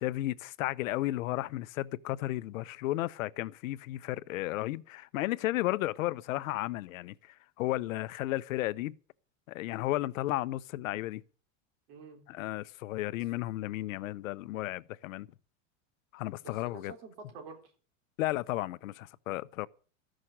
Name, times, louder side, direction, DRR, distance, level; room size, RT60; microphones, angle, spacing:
voice 1, 0.0-8.9 9.5-11.2 12.3-15.3 16.1-16.9 18.2-19.7, left 16 dB, 90° left, 0.8 m, -33 dB
voice 2, 11.9-12.2 16.4-17.7, right 4 dB, 50° right, 4.0 m, -48 dB
14.5 x 6.4 x 8.6 m
supercardioid pair, 170°, 39 cm